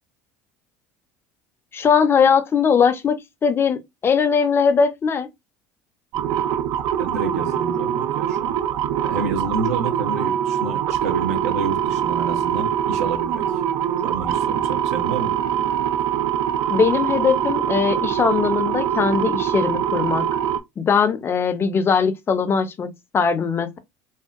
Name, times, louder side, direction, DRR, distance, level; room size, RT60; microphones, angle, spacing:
voice 1, 1.7-5.3 16.7-20.2 20.8-22.9 23.1-23.8, left 6 dB, 30° left, 0.5 m, -20 dB
sound 1, 6.1-20.6, right 9 dB, 65° right, 0.4 m, -23 dB
voice 2, 7.0-8.6 9.0-13.6 14.0-15.3, right 4 dB, 90° right, 0.8 m, -29 dB
2.6 x 2.1 x 2.4 m
supercardioid pair, 90°, 8 cm